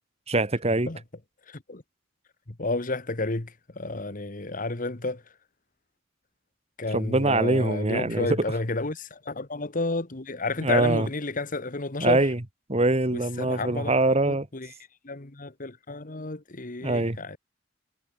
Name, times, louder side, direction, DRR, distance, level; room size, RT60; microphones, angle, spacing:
voice 1, 0.3-0.9 6.9-8.4 10.6-11.1 12.0-12.4 12.7-14.5 16.8-17.2, right 2 dB, 30° right, 1.7 m, -23 dB
voice 2, 1.5-1.8 2.6-5.2 6.8-12.2 13.1-13.9 14.3-14.7 15.0-17.4, left 2 dB, 45° left, 1.5 m, -31 dB
head